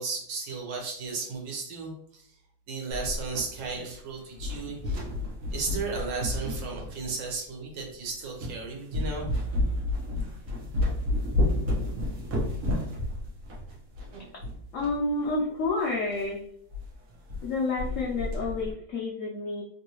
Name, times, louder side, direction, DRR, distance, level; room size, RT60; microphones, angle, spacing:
voice 1, 0.0-2.4 2.7-5.0 5.5-9.3, right 4 dB, 75° right, 0 dB, 1.5 m, -34 dB
sound 1, 2.9-4.0 4.3-7.3 7.9-8.0 8.4-8.6 8.9-15.0 15.3-15.4 15.6-15.7 16.1-16.3 16.7-16.8 17.1-17.5 17.8-18.7, left 1 dB, 55° right, 1.0 m, -30 dB
voice 2, 14.7-16.4 17.4-19.6, left 3 dB, 90° left, -3 dB, 0.6 m, -29 dB
3.3 x 2.7 x 2.8 m, 0.65 s
omnidirectional pair, 2.0 m